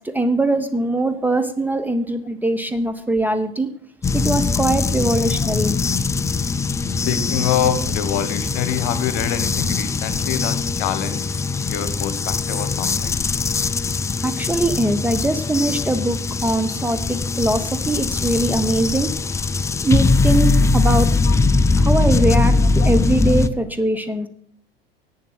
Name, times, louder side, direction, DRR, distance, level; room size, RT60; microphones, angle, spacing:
voice 1, 0.0-3.7 4.1-5.8 14.2-19.1 19.3-19.4 19.8-21.1 21.8-24.3, right 2 dB, 5° right, 8 dB, 0.9 m, -22 dB
sound 1, 4.0-23.5, left 3 dB, 10° left, 0.4 m, -21 dB
voice 2, 6.8-11.3 11.7-13.2 20.3-20.4 21.2-21.4 22.6-22.9, left 9 dB, 50° left, 11 dB, 1.3 m, -25 dB
11.0 x 8.6 x 6.3 m, 0.62 s
figure-of-eight pair, 80°, 29 cm